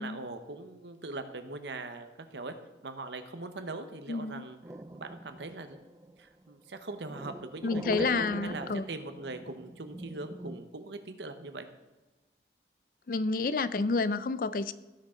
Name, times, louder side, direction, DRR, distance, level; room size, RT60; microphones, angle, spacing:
voice 1, 0.0-2.5 2.8-4.6 4.9-5.8 6.2-11.7, right 2 dB, 85° right, 8 dB, 1.0 m, -41 dB
voice 2, 4.1-4.5 7.6-8.8 13.1-14.7, left 3 dB, 50° left, 15 dB, 0.4 m, -29 dB
sound 1, 4.6-10.6, right 1 dB, 20° right, 0.4 m, -44 dB
17.0 x 6.5 x 3.8 m, 1.1 s
head